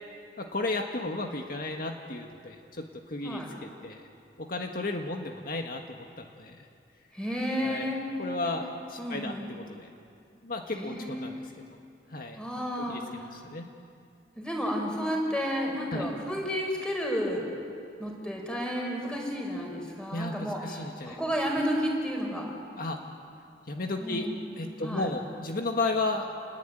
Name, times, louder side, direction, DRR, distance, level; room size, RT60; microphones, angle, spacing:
voice 1, 0.4-4.0 4.4-6.7 7.6-7.9 8.2-9.9 10.4-11.5 12.1-12.4 12.8-13.0 13.3-13.7 15.9-16.1 20.1-21.2 22.8-23.0 23.7-24.3 24.6-26.3, left 2 dB, 55° left, 3 dB, 1.8 m, -34 dB
voice 2, 7.1-8.0 8.4-8.5 9.0-9.5 10.7-11.4 12.3-13.0 14.4-17.4 18.0-22.5 24.0-24.5 24.8-25.1, equal, 5° left, 0 dB, 5.8 m, -32 dB
29.5 x 21.0 x 9.3 m, 2.4 s
head